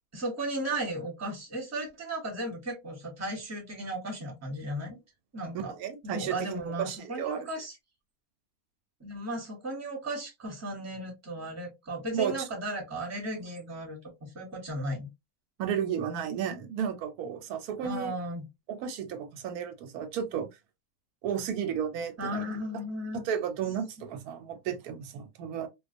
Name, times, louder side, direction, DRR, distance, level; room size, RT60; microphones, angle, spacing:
voice 1, 0.1-5.0 5.3-5.7 6.0-7.7 9.0-15.1 17.8-18.4 22.2-23.3, right 1 dB, 15° right, 0.8 m, -35 dB
voice 2, 5.7-7.5 12.1-12.5 15.6-18.1 18.7-20.5 21.2-22.4 23.1-25.7, right 8 dB, 90° right, 1.1 m, -33 dB
2.4 x 2.3 x 2.5 m
omnidirectional pair, 1.5 m